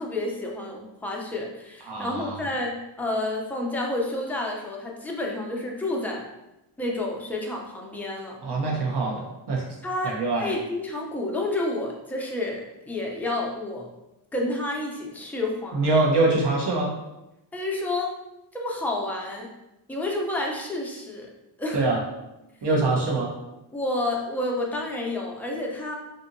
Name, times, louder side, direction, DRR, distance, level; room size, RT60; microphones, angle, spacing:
voice 1, 0.0-6.2 6.8-8.4 9.8-13.9 14.3-15.9 17.5-18.1 18.5-19.5 19.9-21.3 21.6-21.8 23.7-25.9, left 2 dB, 5° left, -1 dB, 0.5 m, -30 dB
voice 2, 1.9-2.4 8.4-9.2 9.5-9.6 10.0-10.5 15.7-16.9 21.7-22.0 22.6-23.3, right 2 dB, 60° right, -2 dB, 0.9 m, -23 dB
2.7 x 2.6 x 2.5 m, 0.96 s
cardioid pair, 60°, 47 cm